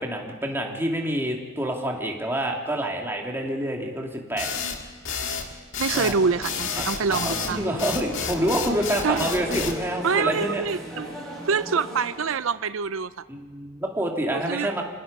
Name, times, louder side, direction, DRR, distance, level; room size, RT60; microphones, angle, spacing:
voice 1, 0.0-4.5 5.9-6.2 6.8-10.6 13.3-14.8, right 1 dB, 10° right, 0 dB, 2.5 m, -27 dB
sound 1, 4.4-9.8, left 6 dB, 65° left, 2.0 m, -30 dB
voice 2, 5.8-7.6 9.0-9.3 10.0-11.1 11.5-13.2 14.3-14.8, right 5 dB, 75° right, 14 dB, 0.6 m, -26 dB
sound 2, 6.2-12.6, right 1 dB, 5° left, 7.8 m, -38 dB
sound 3, 7.1-10.7, left 3 dB, 45° left, 2.7 m, -40 dB
27.5 x 18.5 x 5.4 m, 1.4 s
head